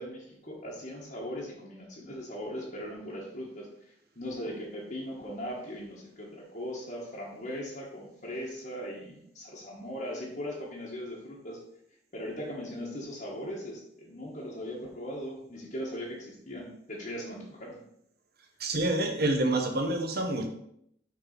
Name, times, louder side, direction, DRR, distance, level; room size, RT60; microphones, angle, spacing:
voice 1, 0.0-3.7 4.1-11.6 12.1-17.8, equal, 45° left, -6 dB, 1.4 m, -39 dB
voice 2, 18.6-20.5, right 2 dB, 55° right, 4 dB, 1.0 m, -27 dB
6.3 x 4.2 x 5.8 m, 0.72 s
head